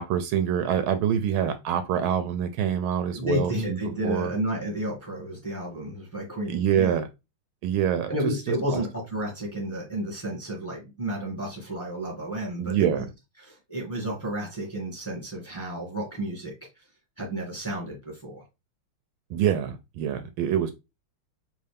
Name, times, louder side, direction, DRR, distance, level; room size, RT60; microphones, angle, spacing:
voice 1, 0.0-3.8 4.0-4.3 6.5-7.0 7.6-8.3 8.7-8.8 12.6-13.1 19.3-20.7, right 9 dB, 80° right, 1.3 m, -25 dB
voice 2, 3.1-7.0 8.1-13.0 13.4-16.8 17.2-18.4, equal, 5° left, 1.4 m, -32 dB
4.7 x 2.7 x 3.4 m
omnidirectional pair, 2.4 m